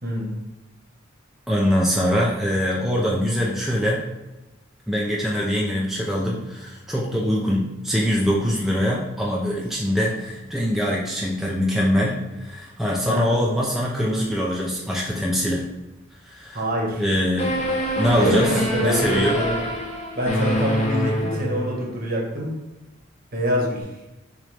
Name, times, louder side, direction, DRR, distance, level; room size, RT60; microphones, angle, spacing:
voice 1, 0.0-0.3 13.1-13.4 16.5-17.0 18.1-19.6 20.1-22.6 23.3-23.9, equal, 45° right, -1 dB, 1.1 m, -25 dB
voice 2, 1.5-4.0 4.9-15.6 16.2-16.6 17.0-17.6 18.0-19.4, equal, ahead, -4 dB, 0.5 m, -23 dB
sound 1, 17.4-22.0, left 1 dB, 35° left, 1.0 m, -25 dB
6.1 x 2.6 x 3.3 m, 1.0 s
head